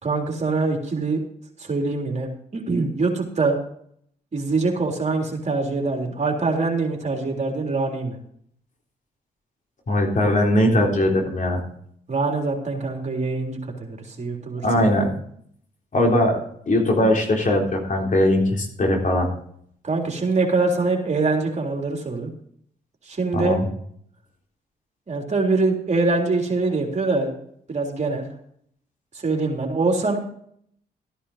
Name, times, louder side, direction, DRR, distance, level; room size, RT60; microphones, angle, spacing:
voice 1, 0.0-1.2 1.6-3.6 4.3-8.2 12.1-15.1 19.8-22.3 23.1-23.6 25.1-27.3 27.7-28.3 29.1-30.2, right 3 dB, 40° right, 1 dB, 3.5 m, -24 dB
voice 2, 9.9-11.6 14.6-15.1 15.9-16.4 16.7-19.3 23.3-23.7, left 1 dB, 50° left, 0 dB, 3.7 m, -20 dB
14.0 x 10.0 x 4.2 m, 0.65 s
cardioid pair, 60°, 17 cm